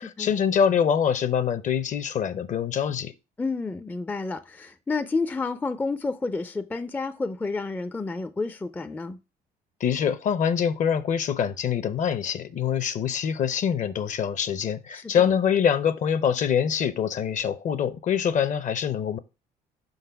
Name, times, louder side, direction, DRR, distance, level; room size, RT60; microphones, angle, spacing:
voice 1, 0.0-3.1 9.8-19.2, left 8 dB, 45° left, 0.6 m, -24 dB
voice 2, 3.4-9.2 14.9-15.4, left 3 dB, 10° left, 0.4 m, -30 dB
5.2 x 4.0 x 5.6 m
cardioid pair, 110°, 17 cm